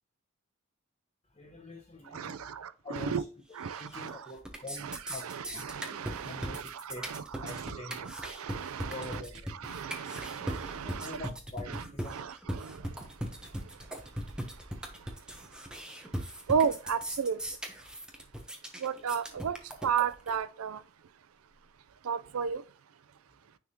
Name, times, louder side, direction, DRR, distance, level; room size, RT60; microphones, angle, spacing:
voice 1, 1.4-2.6 2.8-3.3 3.8-5.6 6.2-7.1 7.3-8.1 8.9-9.5 10.8-12.3, left 2 dB, 30° left, 1.0 m, -45 dB
voice 2, 2.1-3.2 3.6-4.2 4.8-5.0 5.2-9.2 9.6-11.2 12.1-12.8 16.5-17.4 18.8-19.6 19.8-20.8 22.1-22.6, right 7 dB, 85° right, 0.4 m, -33 dB
sound 1, 3.7-4.1 4.4-20.4, equal, 5° right, 0.8 m, -39 dB
9.7 x 3.5 x 2.8 m
head